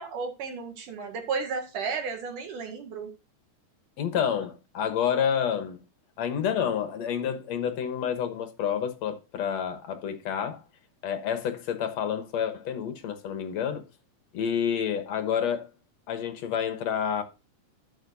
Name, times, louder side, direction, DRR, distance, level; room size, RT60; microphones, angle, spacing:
voice 1, 0.0-3.1, right 5 dB, 85° right, 3.4 m, -33 dB
voice 2, 4.0-5.8 6.2-10.6 11.0-13.8 14.3-15.7 16.1-17.2, left 8 dB, 65° left, 2.2 m, -29 dB
12.5 x 7.7 x 2.7 m
omnidirectional pair, 3.5 m